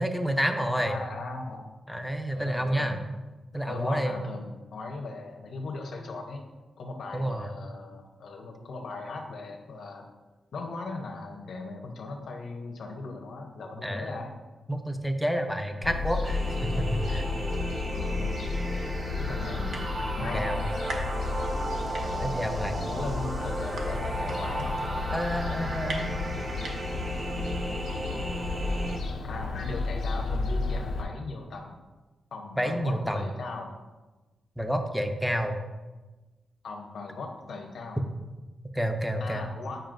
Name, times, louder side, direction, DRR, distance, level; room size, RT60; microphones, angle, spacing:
voice 1, 0.0-1.0 1.9-3.0 3.5-4.2 7.1-7.5 13.8-14.2 14.7-17.2 20.3-20.6 22.2-22.8 25.1-26.1 32.6-33.2 34.6-35.6 38.7-39.5, equal, ahead, 5 dB, 0.5 m, -29 dB
voice 2, 0.6-1.6 2.3-3.0 3.7-6.4 6.8-10.1 10.5-14.3 17.9-18.4 19.2-19.7 20.1-20.8 22.8-24.7 29.3-31.8 32.3-33.7 36.6-38.0 39.2-39.8, left 3 dB, 70° left, 1 dB, 0.8 m, -38 dB
Fowl, 15.8-31.0, left 3 dB, 90° left, 1.4 m, -32 dB
sound 1, 16.2-29.0, right 1 dB, 35° right, 0.8 m, -34 dB
sound 2, 19.7-20.2 20.6-21.7 21.9-27.1, right 2 dB, 70° right, 1.0 m, -40 dB
8.9 x 5.5 x 2.6 m, 1.2 s
wide cardioid pair, 165°, 0 cm